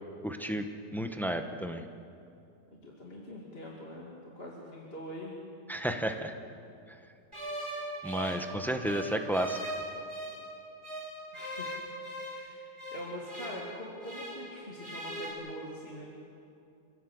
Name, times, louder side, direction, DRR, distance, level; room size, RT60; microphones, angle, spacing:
voice 1, 0.2-0.6 0.9-1.8 5.7-6.3 8.0-9.7, right 1 dB, ahead, 6 dB, 0.6 m, -32 dB
voice 2, 2.8-5.3 6.0-6.1 11.3-11.8 12.3-16.1, left 1 dB, 30° left, -3 dB, 2.5 m, -44 dB
sound 1, 7.3-10.5 10.8-14.5 14.8-15.3, right 1 dB, 15° right, 5.6 m, -40 dB
27.0 x 17.0 x 7.8 m, 2.6 s
omnidirectional pair, 2.1 m